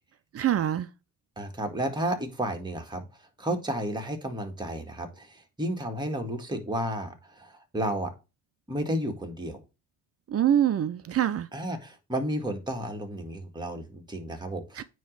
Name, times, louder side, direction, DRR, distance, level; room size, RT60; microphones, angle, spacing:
voice 1, 0.3-0.9 10.3-11.5 14.8-14.9, right 10 dB, 45° right, 0.7 m, -24 dB
voice 2, 1.4-3.0 3.4-8.1 8.7-9.6 11.5-14.8, right 1 dB, 15° right, 1.9 m, -32 dB
9.2 x 3.2 x 6.5 m
cardioid pair, 105°, 34 cm